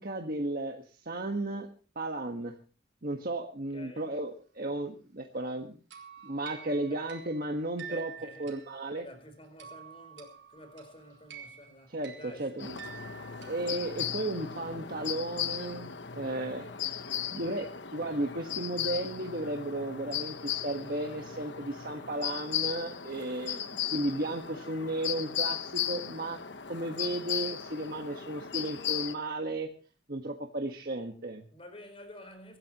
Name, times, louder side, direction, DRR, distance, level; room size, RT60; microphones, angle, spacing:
voice 1, 0.0-1.7 1.9-2.5 3.0-5.8 6.2-8.1 8.4-9.0 11.9-12.8 13.5-16.9 17.3-26.4 26.7-29.7 30.1-31.4, right 1 dB, 50° right, 1.6 m, -34 dB
voice 2, 3.7-4.1 6.9-7.0 7.8-8.5 8.9-12.7 31.5-32.6, left 1 dB, 30° left, 4.6 m, -50 dB
sound 1, 5.9-14.3, right 8 dB, 75° right, 4.2 m, -49 dB
sound 2, 12.6-29.1, left 9 dB, 70° left, 1.1 m, -36 dB
25.0 x 13.5 x 3.0 m
head